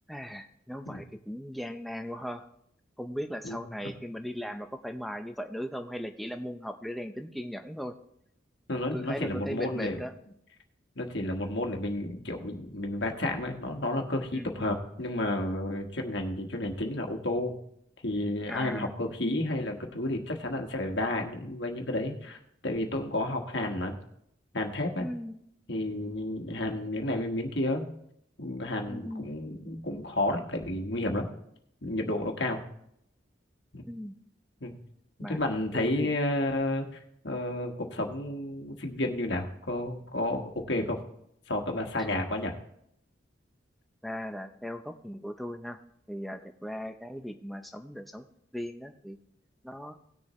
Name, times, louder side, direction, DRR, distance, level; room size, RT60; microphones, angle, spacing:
voice 1, 0.1-2.5 3.0-7.9 8.9-10.1 14.3-14.8 18.5-18.9 25.0-25.4 28.9-29.3 33.9-34.2 35.2-35.4 35.7-36.1 42.0-42.1 44.0-45.8 46.1-48.3 48.5-49.2 49.6-50.0, equal, ahead, 6 dB, 0.6 m, -38 dB
voice 2, 8.7-10.0 10.9-17.5 18.0-22.4 22.6-23.9 24.5-25.1 25.7-27.9 28.4-31.3 31.8-32.6 33.7-33.8 34.6-34.7 35.2-36.9 37.2-41.0 41.5-42.5, left 1 dB, 65° left, 3 dB, 1.4 m, -31 dB
18.0 x 6.8 x 3.1 m, 0.74 s
head